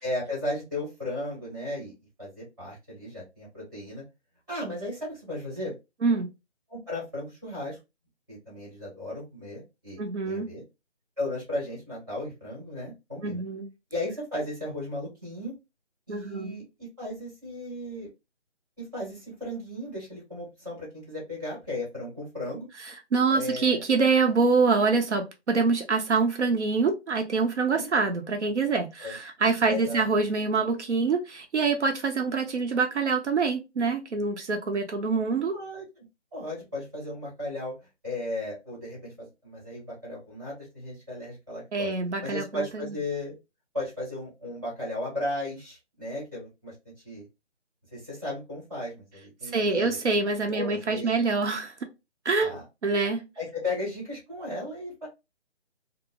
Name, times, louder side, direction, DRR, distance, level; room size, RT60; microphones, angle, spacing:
voice 1, 0.0-1.9 2.2-4.0 4.5-5.7 6.7-7.8 8.3-10.6 11.2-13.4 13.9-15.5 16.1-18.1 18.8-22.7 23.3-23.8 27.7-27.9 29.0-29.2 29.7-30.0 35.5-35.9 36.3-37.8 38.0-41.9 42.2-43.3 43.7-46.7 47.0-47.2 47.9-50.0 50.5-51.1 52.4-52.6 53.3-55.1, left 1 dB, 20° right, 1.3 m, -35 dB
voice 2, 10.0-10.5 13.2-13.7 16.1-16.5 23.1-35.6 41.7-42.9 49.5-51.7 52.2-52.6 52.8-53.2, right 4 dB, 85° right, 0.9 m, -25 dB
2.8 x 2.0 x 2.3 m
hypercardioid pair, 180°, 34 cm